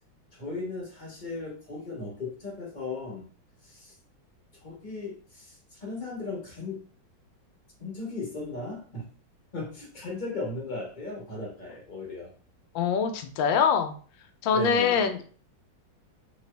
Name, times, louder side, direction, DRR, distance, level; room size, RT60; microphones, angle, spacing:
voice 1, 0.3-3.3 3.6-3.9 4.6-6.8 7.8-9.1 9.5-12.3 14.5-15.0, left 3 dB, 35° left, -3 dB, 0.8 m, -37 dB
voice 2, 12.7-13.9 14.4-15.2, left 6 dB, 75° left, 7 dB, 1.2 m, -24 dB
3.3 x 2.9 x 3.2 m, 0.42 s
omnidirectional pair, 2.2 m